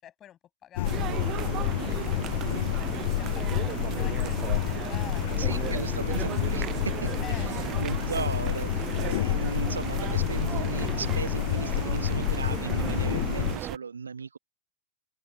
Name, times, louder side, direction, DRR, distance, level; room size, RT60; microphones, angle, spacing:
voice 1, 0.0-1.0 1.7-5.8 7.2-7.5, left 11 dB, 30° left, 7.8 m, -48 dB
sound 1, 0.8-13.6, left 17 dB, 55° left, 0.6 m, -29 dB
sound 2, 0.8-13.8, right 13 dB, 35° right, 0.4 m, -35 dB
voice 2, 5.3-7.5 7.8-14.4, right 5 dB, 75° right, 1.4 m, -36 dB
figure-of-eight pair, 90°, 0 cm